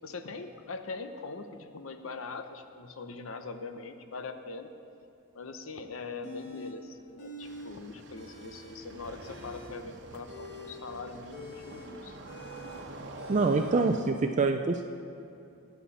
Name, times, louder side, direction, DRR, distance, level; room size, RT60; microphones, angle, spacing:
voice 1, 0.0-4.7 5.3-12.2, left 3 dB, 75° left, 8 dB, 0.8 m, -42 dB
sound 1, 6.2-6.8 7.2-7.7 8.0-8.8 9.1-13.8, left 1 dB, 60° left, 2.1 m, -46 dB
sound 2, 7.4-14.0, right 2 dB, 60° right, 1.1 m, -46 dB
voice 2, 13.3-14.8, right 3 dB, 35° right, 5 dB, 0.4 m, -25 dB
21.5 x 7.5 x 4.2 m, 2.6 s
head